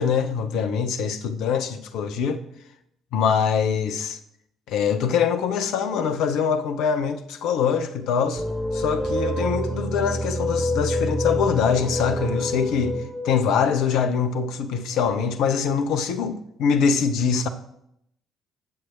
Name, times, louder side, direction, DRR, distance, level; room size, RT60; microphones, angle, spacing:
voice 1, 0.0-2.4 3.1-4.2 4.7-8.4 8.7-13.0 13.2-17.5, left 6 dB, 60° left, 0.8 m, -23 dB
sound 1, 8.3-14.5, equal, 5° right, 4.0 m, -27 dB
19.5 x 7.6 x 2.6 m
figure-of-eight pair, 45°, 0 cm